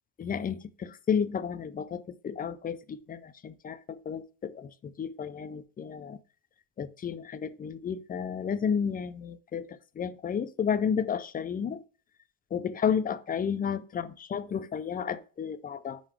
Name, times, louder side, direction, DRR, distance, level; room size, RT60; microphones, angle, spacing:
voice 1, 0.2-6.2 6.8-11.8 12.5-16.0, left 7 dB, 20° left, 0.4 m, -32 dB
11.0 x 3.9 x 3.2 m
cardioid pair, 150°, 42 cm